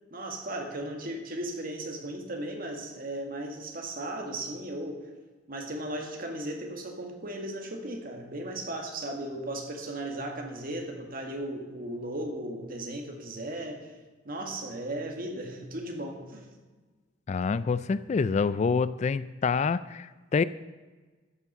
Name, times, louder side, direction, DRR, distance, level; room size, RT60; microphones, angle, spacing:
voice 1, 0.1-5.0 5.5-13.9 14.3-16.5, right 1 dB, 50° right, 2 dB, 1.9 m, -36 dB
voice 2, 17.3-20.4, left 5 dB, 35° left, 16 dB, 0.3 m, -27 dB
13.0 x 7.3 x 6.8 m, 1.3 s
head